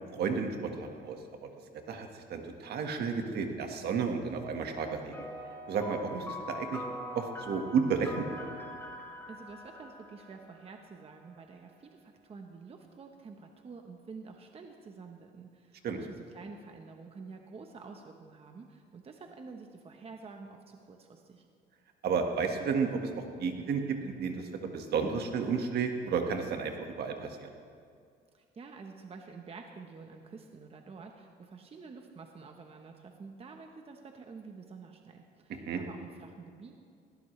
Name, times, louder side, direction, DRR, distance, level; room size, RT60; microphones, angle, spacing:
voice 1, 0.1-1.5 1.9-5.2 5.7-6.8 7.1-8.5 15.8-16.0 22.0-27.5 35.6-35.8, right 5 dB, 65° right, 4 dB, 1.7 m, -32 dB
sound 1, 5.1-10.9, left 1 dB, 10° left, 2.2 m, -43 dB
voice 2, 9.3-21.4 28.3-36.8, right 4 dB, 35° right, 3 dB, 1.1 m, -49 dB
19.5 x 16.5 x 3.3 m, 2.3 s
cardioid pair, 115°, 18 cm